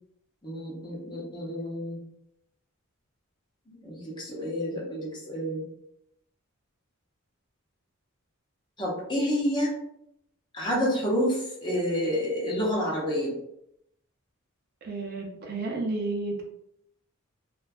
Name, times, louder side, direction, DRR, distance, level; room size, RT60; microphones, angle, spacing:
voice 1, 0.4-2.0 3.7-5.6 8.8-9.7 10.5-13.3, equal, 20° left, -4 dB, 0.6 m, -29 dB
voice 2, 14.8-16.4, right 3 dB, 45° right, 0 dB, 0.4 m, -31 dB
2.5 x 2.2 x 2.3 m, 0.77 s
head